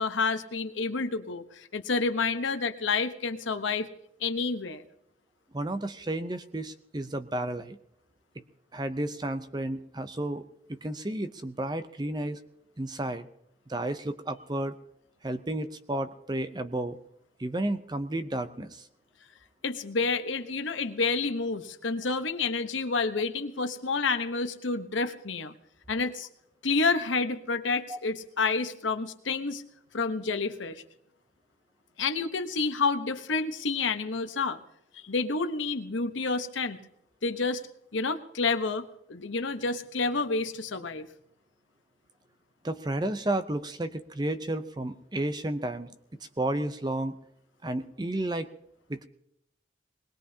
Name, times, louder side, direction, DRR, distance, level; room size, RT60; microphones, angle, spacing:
voice 1, 0.0-3.9 4.2-4.8 19.6-25.5 25.9-26.3 26.6-29.6 29.9-30.8 32.0-34.6 34.9-36.8 37.2-37.6 37.9-41.1, left 4 dB, 85° left, 9 dB, 1.0 m, -29 dB
voice 2, 5.5-7.8 8.7-12.4 12.8-13.3 13.7-14.8 15.2-17.0 17.4-18.9 27.9-28.0 42.6-45.9 46.4-47.2 47.6-48.5 48.9-49.1, right 1 dB, 20° right, 11 dB, 0.6 m, -32 dB
22.0 x 20.0 x 2.8 m, 0.76 s
head